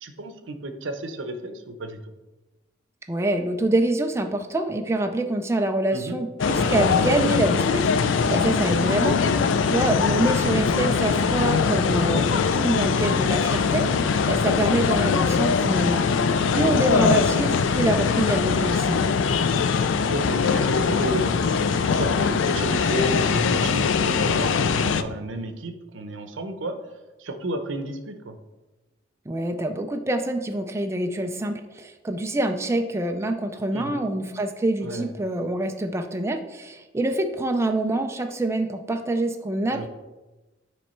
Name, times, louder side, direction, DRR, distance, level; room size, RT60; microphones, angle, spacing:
voice 1, 0.0-2.1 5.9-6.2 8.5-8.8 10.3-10.5 14.3-14.6 20.0-26.8 27.2-28.4 33.7-34.0 34.8-35.1 39.7-39.9, right 1 dB, 85° right, 8 dB, 0.7 m, -32 dB
voice 2, 3.1-9.2 9.7-16.1 16.5-19.0 29.3-39.9, right 1 dB, 15° right, 5 dB, 0.3 m, -26 dB
sound 1, 6.4-25.0, left 5 dB, 85° left, 0.4 m, -22 dB
sound 2, 6.4-7.8, left 1 dB, 55° left, 1.0 m, -33 dB
9.3 x 3.2 x 4.3 m, 1.1 s
head